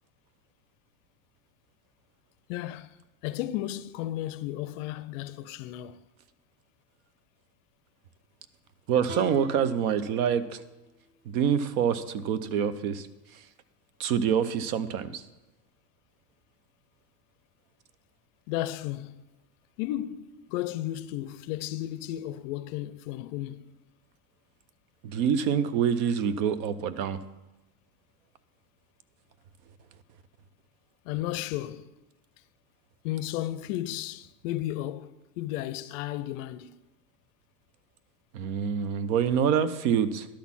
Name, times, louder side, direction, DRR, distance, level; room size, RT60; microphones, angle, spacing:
voice 1, 2.5-3.0 3.2-6.0 18.5-19.1 19.8-23.6 31.1-31.8 33.0-35.1 35.4-36.8, left 14 dB, 55° left, 0.5 m, -33 dB
voice 2, 8.9-10.6 11.3-13.1 14.0-15.2 25.0-27.2 38.3-40.3, right 8 dB, 65° right, 0.8 m, -26 dB
sound 1, 9.1-12.2, right 2 dB, 40° right, 1.0 m, -46 dB
11.5 x 4.1 x 7.2 m
supercardioid pair, 135°, 47 cm